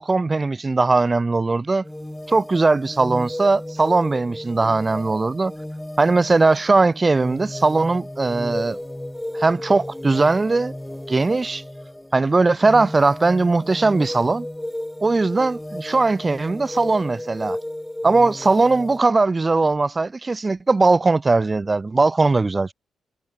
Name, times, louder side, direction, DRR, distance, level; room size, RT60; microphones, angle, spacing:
voice 1, 0.0-1.8 2.3-5.5 6.0-8.8 9.3-10.7 11.1-11.6 12.1-14.5 15.0-17.6 18.0-22.7, right 3 dB, 30° right, 0.9 m, -19 dB
sound 1, 1.8-19.0, left 1 dB, 10° left, 4.8 m, -34 dB
supercardioid pair, 55°, 0 cm